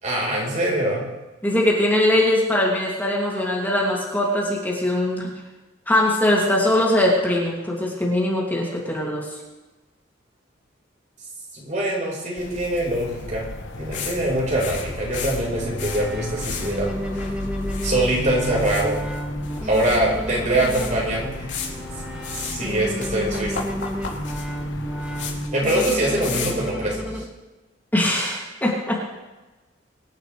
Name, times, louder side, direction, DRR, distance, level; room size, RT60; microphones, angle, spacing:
voice 1, 0.0-1.0 11.5-13.4 13.8-17.0 17.8-19.0 19.6-21.5 22.3-23.6 25.5-27.2, right 1 dB, 40° right, -2 dB, 4.8 m, -23 dB
voice 2, 1.4-5.3 5.9-9.3 27.9-29.0, left 1 dB, 10° left, -4 dB, 2.8 m, -21 dB
sound 1, 12.4-25.5, left 2 dB, 85° left, 1.1 m, -35 dB
sound 2, 13.9-14.2 14.4-16.0 16.3-16.7 17.0-18.3 18.6-20.0 20.3-20.4 20.5-20.9 21.5-21.7 22.2-22.7 23.0-26.7, left 6 dB, 70° left, 3.6 m, -34 dB
sound 3, 15.2-27.2, equal, 5° right, 2.2 m, -31 dB
24.5 x 11.5 x 3.4 m, 1.1 s
head